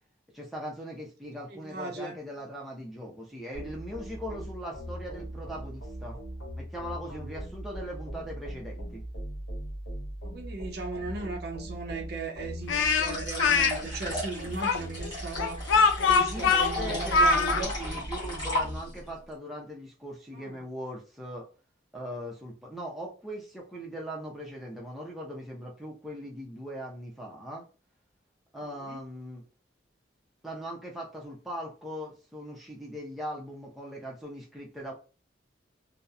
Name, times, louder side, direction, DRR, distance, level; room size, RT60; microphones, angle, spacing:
voice 1, 0.3-6.2 6.6-9.0 16.1-21.5 21.9-27.7 28.5-29.4 30.4-34.9, equal, ahead, 0.5 m, -40 dB
voice 2, 1.5-2.1 10.2-17.7 20.3-20.6 28.8-29.0, right 3 dB, 55° right, 0.5 m, -37 dB
sound 1, 3.5-18.8, right 1 dB, 65° left, 1.0 m, -39 dB
Speech, 12.7-13.7 14.6-17.6, left 4 dB, 90° left, 0.4 m, -23 dB
sound 2, 12.9-19.1, left 1 dB, 20° left, 1.0 m, -36 dB
2.7 x 2.0 x 2.3 m
head